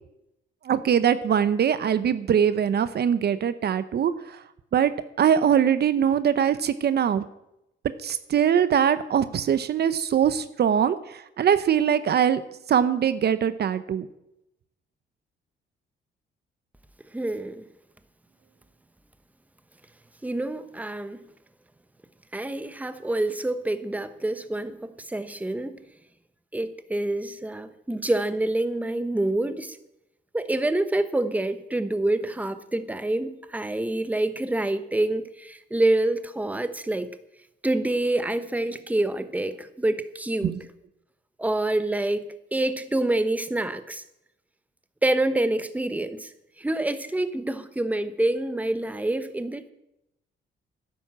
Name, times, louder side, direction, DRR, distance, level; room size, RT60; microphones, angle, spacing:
voice 1, 0.6-4.4 4.7-4.9 5.2-7.2 8.0-12.4 12.7-14.1 40.4-40.6, right 8 dB, 55° right, 0.8 m, -22 dB
voice 2, 17.1-17.6 20.2-21.2 22.3-25.7 26.5-29.8 30.3-37.1 37.6-40.5 41.4-44.0 45.0-46.3 46.6-49.7, right 1 dB, 5° right, 1.0 m, -27 dB
11.5 x 10.5 x 7.4 m
cardioid pair, 90°, 20 cm